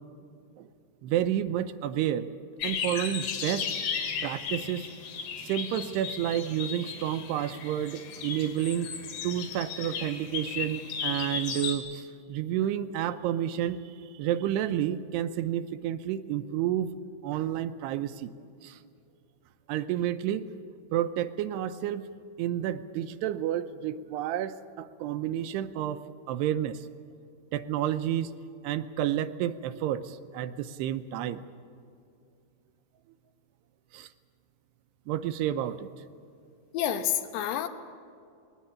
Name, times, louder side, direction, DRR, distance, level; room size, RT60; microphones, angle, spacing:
voice 1, 1.0-2.3 2.6-3.7 4.2-4.9 5.4-8.9 9.2-16.9 17.2-18.3 18.6-18.8 19.7-20.5 20.9-22.0 22.4-26.0 26.3-26.8 27.5-28.3 28.6-31.4 33.9-34.1 35.1-35.9, right 11 dB, 85° right, 10 dB, 2.8 m, -30 dB
sound 1, 2.6-11.8, left 6 dB, 70° left, 4.0 m, -35 dB
voice 2, 36.7-37.7, left 10 dB, 90° left, 8 dB, 3.3 m, -28 dB
20.0 x 19.0 x 8.6 m, 2.4 s
omnidirectional pair, 4.8 m